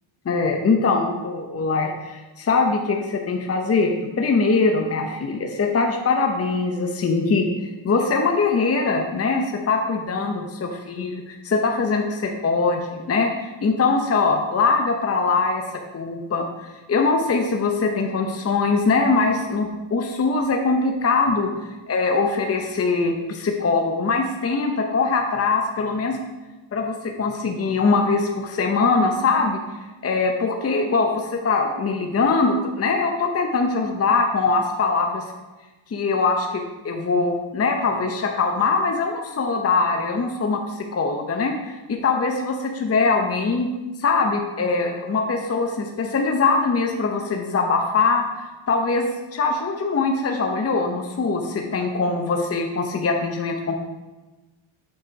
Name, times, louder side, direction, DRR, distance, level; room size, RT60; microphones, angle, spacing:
voice 1, 0.3-3.9 4.2-15.6 15.9-21.5 21.9-26.2 26.7-29.6 30.0-35.2 35.9-43.7 44.0-48.2 48.7-53.7, left 4 dB, 30° left, 3 dB, 0.7 m, -22 dB
7.6 x 4.3 x 5.1 m, 1.2 s
cardioid pair, 95°, 48 cm